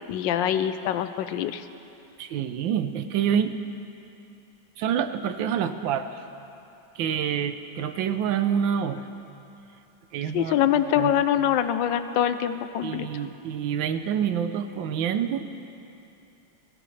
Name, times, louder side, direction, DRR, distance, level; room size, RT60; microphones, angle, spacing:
voice 1, 0.1-1.6 10.3-13.1, left 10 dB, 80° left, 11 dB, 1.2 m, -24 dB
voice 2, 2.2-3.5 4.8-6.2 7.0-9.1 10.1-10.6 11.0-11.1 12.8-15.5, right 8 dB, 80° right, 10 dB, 1.4 m, -27 dB
21.0 x 17.5 x 3.3 m, 2.7 s
omnidirectional pair, 2.1 m